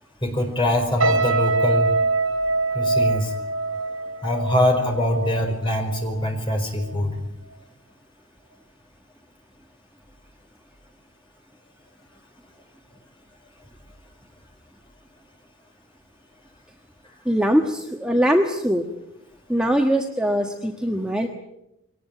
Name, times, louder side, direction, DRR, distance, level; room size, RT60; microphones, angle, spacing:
voice 1, 0.2-1.9 2.7-3.3 4.2-7.2, left 1 dB, 25° left, 3 dB, 4.7 m, -23 dB
sound 1, 1.0-6.3 6.6-6.9, right 3 dB, 80° right, 6.1 m, -24 dB
voice 2, 17.2-18.8 19.5-21.3, equal, 5° right, 2 dB, 1.3 m, -21 dB
22.5 x 19.0 x 9.1 m, 0.84 s
head